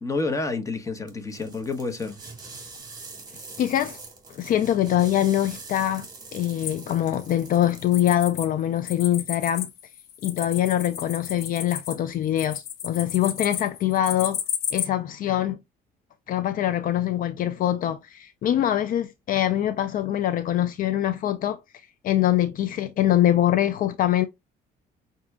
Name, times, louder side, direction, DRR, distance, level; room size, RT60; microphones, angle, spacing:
voice 1, 0.0-2.2, left 3 dB, 20° left, 1.0 m, -29 dB
sound 1, 1.1-8.3, right 3 dB, 25° right, 1.8 m, -44 dB
voice 2, 3.6-4.0 4.3-9.7 10.2-14.4 14.7-15.6 16.3-21.6 22.0-24.3, left 12 dB, 55° left, 0.5 m, -24 dB
sound 2, 6.6-8.5 8.8-14.9, left 9 dB, 70° left, 0.9 m, -33 dB
5.9 x 2.7 x 2.3 m
cardioid pair, 110°, 17 cm